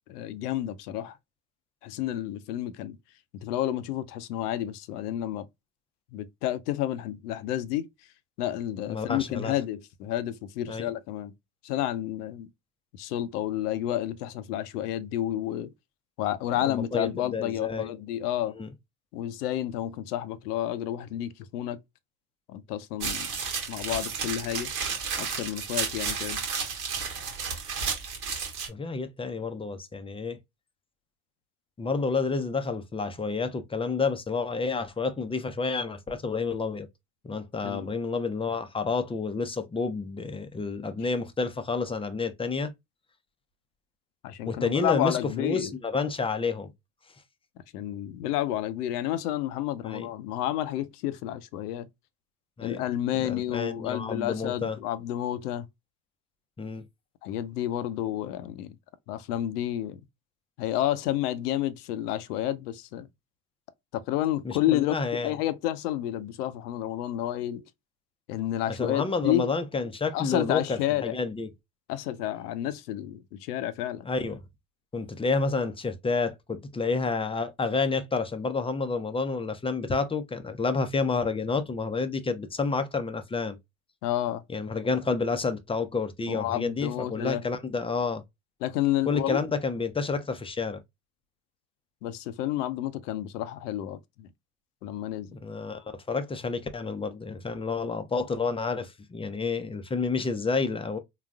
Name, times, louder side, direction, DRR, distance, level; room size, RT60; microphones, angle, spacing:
voice 1, 0.1-1.2 1.8-3.0 3.4-5.5 6.1-7.9 8.4-11.3 11.6-12.5 13.0-15.7 16.2-18.5 19.1-21.8 22.5-23.3 23.7-24.7 25.2-26.4 37.6-37.9 44.2-45.7 47.7-51.9 52.6-55.7 57.2-58.8 59.1-60.0 60.6-63.1 63.9-65.0 65.2-67.6 68.3-69.5 70.1-71.2 71.9-74.1 84.0-84.4 86.3-87.4 88.6-89.4 92.0-94.3 94.8-95.3, left 12 dB, 80° left, 0.6 m, -30 dB
voice 2, 8.9-9.5 10.7-10.9 16.6-17.9 18.6-18.7 28.7-30.4 31.8-36.9 37.2-42.7 44.5-46.7 49.8-50.1 52.6-52.8 53.2-54.8 56.6-56.8 64.4-65.3 68.7-71.5 74.1-74.4 74.9-83.6 84.5-88.2 89.1-90.8 95.3-101.0, left 4 dB, 15° left, 0.4 m, -29 dB
sound 1, 23.0-28.7, right 6 dB, 85° right, 1.2 m, -32 dB
3.9 x 2.3 x 2.3 m
hypercardioid pair, 65°, 46 cm